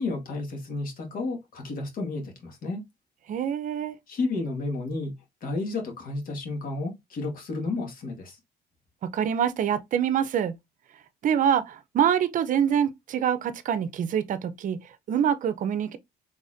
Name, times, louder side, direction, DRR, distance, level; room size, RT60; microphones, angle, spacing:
voice 1, 0.0-2.8 4.1-5.1 5.4-8.4, left 3 dB, 55° left, 1.8 m, -32 dB
voice 2, 3.3-4.0 9.1-10.5 11.2-16.0, right 8 dB, 50° right, 0.6 m, -25 dB
4.0 x 3.5 x 2.6 m
cardioid pair, 110°, 17 cm